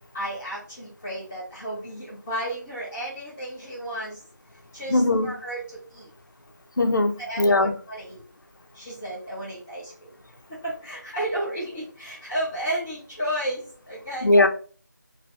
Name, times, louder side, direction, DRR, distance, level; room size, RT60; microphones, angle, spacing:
voice 1, 0.1-4.2 4.7-5.6 5.9-6.1 7.2-8.2 8.7-9.9 10.6-14.3, right 1 dB, 10° left, 0.8 m, -32 dB
voice 2, 4.9-5.3 6.8-7.7 14.2-14.5, left 2 dB, 80° left, 0.7 m, -20 dB
3.0 x 2.7 x 4.3 m
figure-of-eight pair, 170°, 10 cm